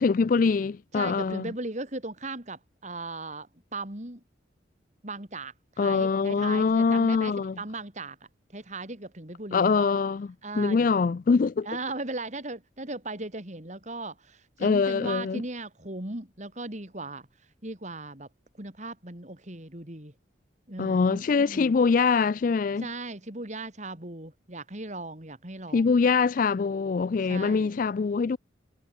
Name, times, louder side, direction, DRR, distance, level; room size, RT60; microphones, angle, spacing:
voice 1, 0.0-1.5 5.8-7.6 9.5-10.3 10.5-11.7 14.6-15.4 20.8-22.9 25.7-28.4, left 5 dB, 45° left, 0.3 m, -24 dB
voice 2, 0.9-4.2 5.0-9.9 10.4-10.9 11.6-17.3 17.6-18.3 18.6-20.1 20.7-21.7 22.8-25.9 27.3-27.7, right 2 dB, 40° right, 3.1 m, -38 dB
head